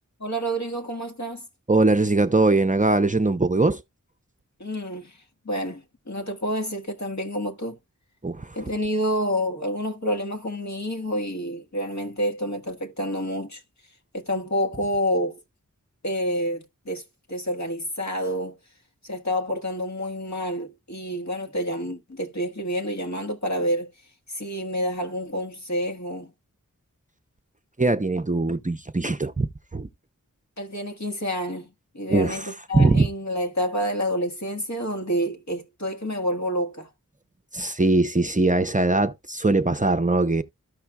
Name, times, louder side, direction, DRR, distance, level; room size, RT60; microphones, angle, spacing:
voice 1, 0.2-1.5 4.6-7.8 8.5-13.6 14.1-15.4 16.0-17.0 17.3-18.6 19.0-23.9 24.3-26.3 30.6-36.9, equal, 60° left, 1.5 m, -28 dB
voice 2, 1.7-3.8 8.2-8.6 27.8-29.5 29.7-29.9 32.1-33.1 37.5-40.4, right 2 dB, 25° right, 0.6 m, -21 dB
13.5 x 5.8 x 2.3 m
wide cardioid pair, 45°, 32 cm